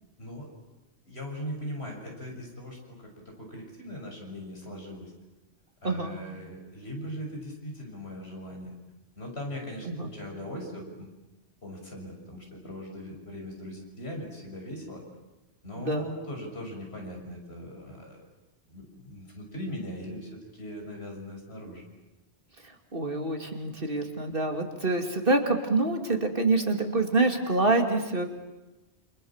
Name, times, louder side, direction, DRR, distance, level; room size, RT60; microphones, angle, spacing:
voice 1, 1.1-5.1 5.8-8.7 9.2-11.1 11.6-15.0 15.6-18.3 18.7-21.8, equal, 65° left, 1 dB, 6.7 m, -39 dB
voice 2, 5.8-6.2 9.8-10.1 15.7-16.1 22.6-28.3, right 2 dB, 50° right, 4 dB, 2.9 m, -26 dB
28.5 x 27.5 x 7.4 m, 1.1 s
omnidirectional pair, 1.1 m